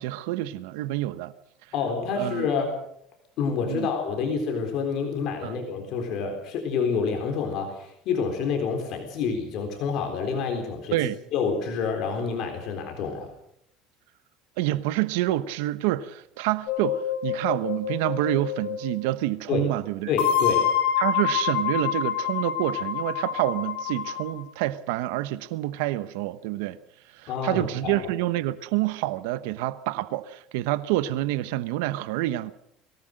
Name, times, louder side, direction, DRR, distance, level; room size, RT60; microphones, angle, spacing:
voice 1, 0.0-1.3 2.2-2.5 3.6-3.9 5.4-5.5 10.9-11.2 14.6-20.1 21.0-26.8 27.1-32.5, right 15 dB, 90° right, 0.9 m, -27 dB
voice 2, 1.7-2.8 3.4-10.9 11.3-13.3 19.5-19.7 20.1-20.7 27.3-28.1, left 5 dB, 50° left, 3.9 m, -28 dB
sound 1, 16.7-19.0 20.2-24.4, left 9 dB, 70° left, 3.3 m, -27 dB
23.0 x 17.5 x 6.5 m
cardioid pair, 160°, 0 cm